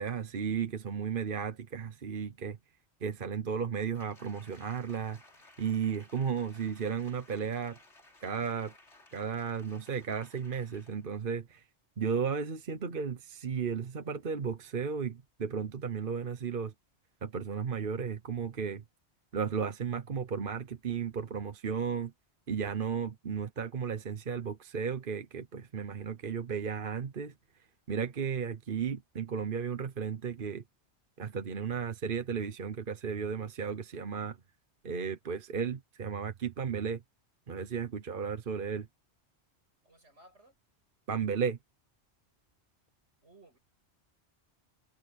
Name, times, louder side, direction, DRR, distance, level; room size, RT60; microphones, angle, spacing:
voice 1, 0.0-2.6 3.0-5.2 5.6-7.8 8.2-8.7 9.1-11.7 12.0-16.7 17.2-18.8 19.3-22.1 22.5-27.3 27.9-30.6 31.2-34.4 34.8-37.0 37.5-38.9 41.1-41.6, right 6 dB, 50° right, 1.2 m, -34 dB
Applause, 3.9-11.1 11.5-11.6, left 2 dB, 80° left, 4.3 m, -59 dB
voice 2, 39.8-40.6 43.2-43.6, right 2 dB, 80° right, 6.9 m, -59 dB
omnidirectional pair, 1.2 m